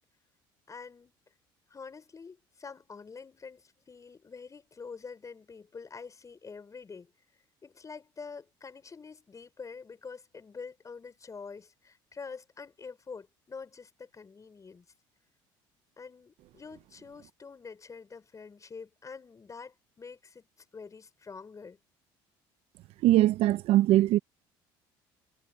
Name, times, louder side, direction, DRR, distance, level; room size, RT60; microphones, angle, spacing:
voice 1, 0.7-1.1 1.7-7.1 7.6-14.8 16.0-20.5 20.7-21.8, left 5 dB, 30° left, 6.3 m, -46 dB
voice 2, 23.0-24.2, right 15 dB, 65° right, 0.8 m, -21 dB
supercardioid pair, 75°, 11 cm